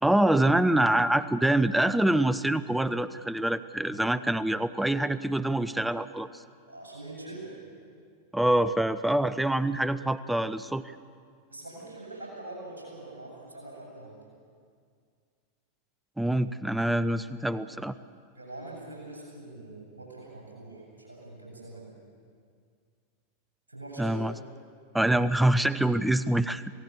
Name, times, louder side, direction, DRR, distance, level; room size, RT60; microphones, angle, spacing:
voice 1, 0.0-6.3 8.3-10.8 16.2-17.9 24.0-24.3 24.9-26.7, right 1 dB, 5° right, 14 dB, 0.6 m, -25 dB
voice 2, 6.7-7.5 11.5-14.2 18.3-21.9 23.7-24.2, right 2 dB, 75° right, -2 dB, 7.9 m, -43 dB
28.0 x 18.0 x 7.0 m, 2.2 s
figure-of-eight pair, 90°, 0 cm